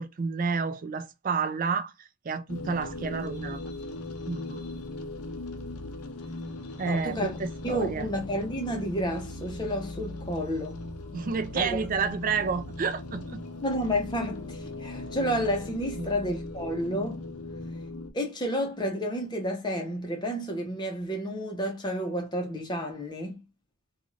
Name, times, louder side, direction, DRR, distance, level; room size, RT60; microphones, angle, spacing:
voice 1, 0.0-3.6 4.3-4.6 6.8-8.1 11.1-13.4 16.0-16.1, right 5 dB, 40° right, 0.3 m, -30 dB
sound 1, 2.5-18.1, left 2 dB, 85° left, 0.6 m, -38 dB
voice 2, 6.8-7.3 7.6-10.8 11.6-11.8 13.6-17.2 18.1-23.4, equal, 20° left, 0.7 m, -30 dB
2.5 x 2.3 x 3.1 m
head